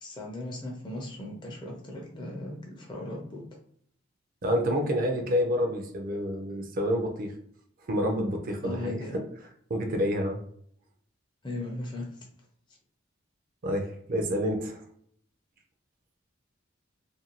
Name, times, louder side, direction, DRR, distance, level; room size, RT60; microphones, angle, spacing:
voice 1, 0.0-3.4 8.6-9.2 11.4-12.3 12.7-12.8, left 2 dB, 25° left, -1 dB, 0.5 m, -38 dB
voice 2, 4.4-7.3 7.9-9.3 9.7-10.4 13.6-14.8, equal, 45° right, 4 dB, 0.5 m, -28 dB
2.5 x 2.2 x 2.8 m, 0.65 s
head